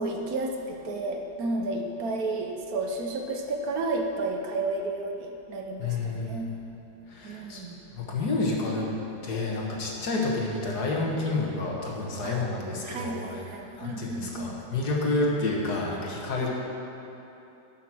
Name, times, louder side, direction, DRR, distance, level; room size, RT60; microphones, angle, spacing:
voice 1, 0.0-6.5 7.2-7.8 12.2-12.4 12.8-14.6 16.4-16.5, right 2 dB, 65° right, 2 dB, 1.2 m, -32 dB
voice 2, 5.8-6.5 7.1-7.6 7.9-13.4 13.8-16.5, left 2 dB, 70° left, -2 dB, 1.9 m, -29 dB
11.0 x 6.1 x 6.1 m, 2.9 s
omnidirectional pair, 1.8 m